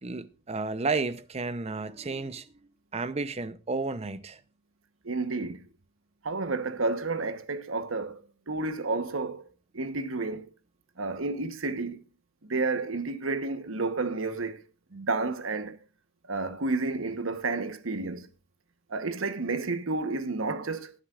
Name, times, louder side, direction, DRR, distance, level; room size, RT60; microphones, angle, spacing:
voice 1, 0.0-2.5 2.9-4.4, right 3 dB, 30° right, 0.7 m, -32 dB
voice 2, 5.0-5.7 6.2-9.4 9.7-10.5 11.0-12.0 12.4-14.6 14.9-15.8 16.3-18.3 18.9-20.9, right 3 dB, 90° right, 1.1 m, -31 dB
18.5 x 10.0 x 2.4 m
head